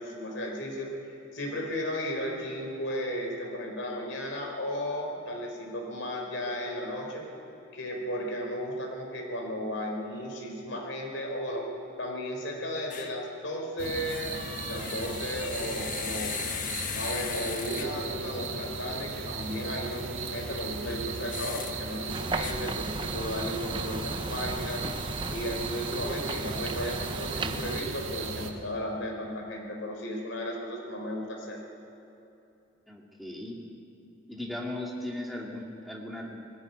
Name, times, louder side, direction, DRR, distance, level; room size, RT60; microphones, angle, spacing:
voice 1, 0.0-7.3 7.7-11.7 12.0-16.3 16.9-24.8 25.3-31.6, equal, 65° left, 1 dB, 4.3 m, -34 dB
sound 1, 12.9-13.2 13.9-18.2 21.3-21.7 22.4-22.5, left 8 dB, 40° left, 1.1 m, -38 dB
sound 2, 13.8-28.5, right 4 dB, 75° right, 1.8 m, -37 dB
sound 3, 22.1-27.8, right 3 dB, 25° right, 0.6 m, -36 dB
voice 2, 32.9-33.6 34.3-36.4, left 1 dB, ahead, -2 dB, 2.2 m, -37 dB
19.0 x 15.0 x 9.5 m, 2.9 s
head